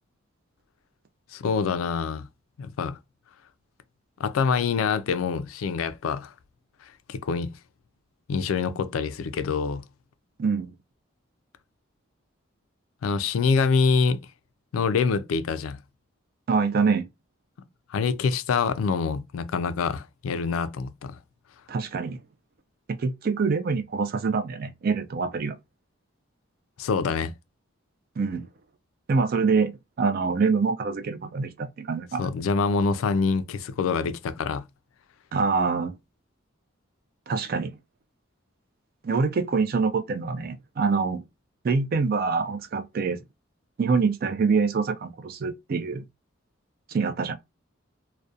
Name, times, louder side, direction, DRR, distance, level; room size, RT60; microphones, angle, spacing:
voice 1, 1.3-2.3 2.6-3.0 4.2-6.3 7.1-7.5 8.3-9.8 13.0-14.2 14.7-15.8 17.9-21.2 26.8-27.3 32.2-34.6, left 5 dB, 90° left, 0.3 m, -25 dB
voice 2, 10.4-10.7 16.5-17.1 21.7-22.2 23.0-25.6 28.2-28.5 29.1-29.7 30.0-32.3 35.3-35.9 37.3-37.8 39.0-41.2 41.6-43.2 43.8-46.0 46.9-47.3, right 4 dB, 45° right, 0.3 m, -25 dB
2.3 x 2.1 x 2.6 m
head